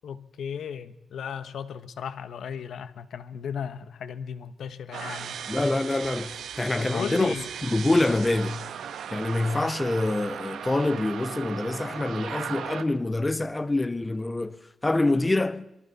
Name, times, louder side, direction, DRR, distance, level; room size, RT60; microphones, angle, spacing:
voice 1, 0.0-5.4 6.8-7.5, left 7 dB, 75° left, 1.2 m, -35 dB
sound 1, 4.9-12.8, right 8 dB, 90° right, 1.5 m, -37 dB
voice 2, 5.5-7.4 7.6-8.6 9.1-15.7, left 2 dB, 15° left, 0.7 m, -26 dB
26.5 x 23.0 x 4.3 m
wide cardioid pair, 150°, 0 cm